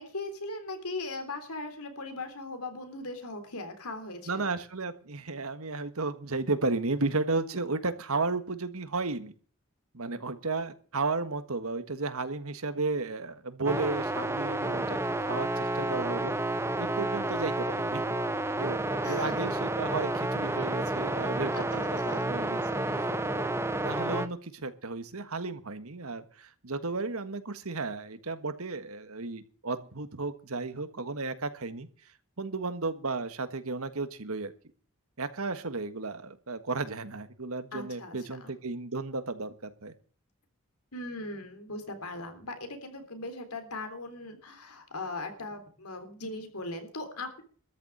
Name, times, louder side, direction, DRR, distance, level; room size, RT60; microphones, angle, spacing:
voice 1, 0.0-4.5 19.0-19.4 21.5-22.2 22.8-23.2 37.7-38.1 38.4-38.5 40.9-47.4, left 2 dB, 85° left, 7 dB, 3.6 m, -39 dB
voice 2, 4.3-9.3 9.9-16.3 16.8-18.0 18.6-22.9 23.3-31.9 32.4-34.5 35.2-39.9, right 3 dB, 80° right, 11 dB, 1.5 m, -34 dB
sound 1, 13.7-24.3, right 1 dB, 10° right, 0.7 m, -30 dB
13.5 x 6.9 x 9.1 m, 0.42 s
head